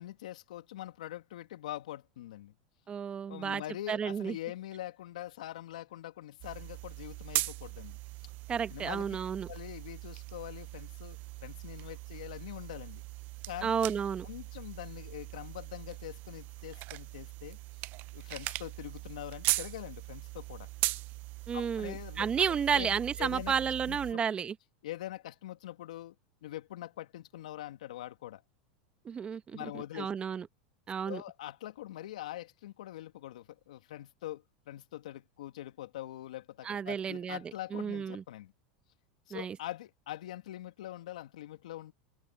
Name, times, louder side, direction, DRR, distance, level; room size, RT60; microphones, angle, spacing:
voice 1, 0.0-2.5 3.3-8.0 8.7-9.1 9.5-13.0 13.5-13.7 14.2-17.6 18.1-20.7 21.5-22.3 22.7-24.2 24.8-26.1 26.4-28.4 29.5-30.1 31.0-38.5 39.3-41.9, left 14 dB, 80° left, 2.6 m, -43 dB
voice 2, 2.9-3.6 3.9-4.3 8.5-9.5 13.6-14.3 21.5-24.5 29.0-30.5 30.9-31.2 36.6-37.4 37.7-38.2 39.3-39.6, right 7 dB, 25° right, 1.4 m, -32 dB
sound 1, 6.4-24.1, right 20 dB, 50° right, 0.7 m, -40 dB
hypercardioid pair, 100°, 4 cm